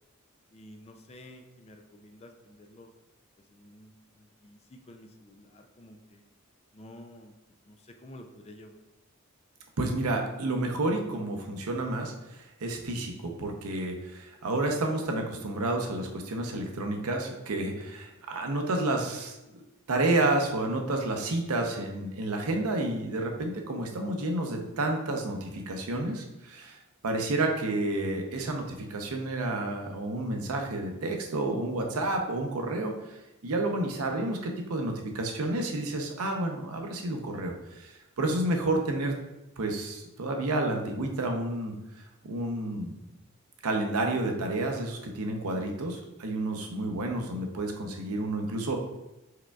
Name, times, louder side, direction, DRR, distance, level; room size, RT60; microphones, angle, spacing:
voice 1, 0.5-2.9 3.5-6.2 6.7-7.3 7.6-8.8, left 1 dB, 30° left, 5 dB, 0.4 m, -51 dB
voice 2, 9.8-19.6 19.9-39.1 39.6-42.9 43.6-48.8, right 2 dB, 90° right, 3 dB, 0.7 m, -30 dB
4.8 x 4.4 x 2.3 m, 0.96 s
head